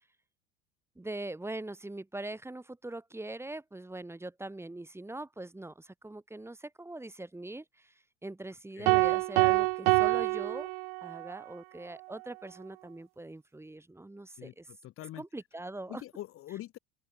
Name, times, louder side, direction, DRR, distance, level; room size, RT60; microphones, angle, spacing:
voice 1, 1.0-7.9 8.2-10.7 11.0-14.7 15.1-16.0, right 2 dB, 5° right, 2.5 m, -42 dB
sound 1, 8.9-11.3, right 33 dB, 55° right, 0.7 m, -26 dB
voice 2, 14.4-15.2 15.9-16.8, left 14 dB, 40° left, 1.6 m, -44 dB
open air
figure-of-eight pair, 70°, 33 cm